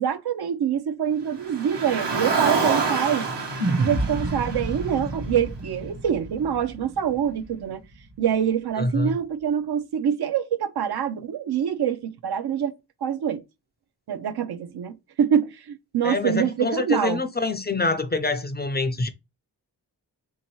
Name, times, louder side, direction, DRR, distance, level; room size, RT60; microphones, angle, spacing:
voice 1, 0.0-3.3 3.7-7.8 8.2-12.7 13.0-13.4 14.1-17.2, right 8 dB, 65° right, 0.6 m, -25 dB
Car, 1.4-5.8, right 4 dB, 80° right, 1.2 m, -27 dB
sound 1, 3.6-7.9, right 2 dB, 45° right, 0.9 m, -30 dB
voice 2, 8.8-9.2 16.0-19.1, left 3 dB, 25° left, 0.4 m, -25 dB
3.5 x 2.8 x 2.9 m
wide cardioid pair, 80°, 42 cm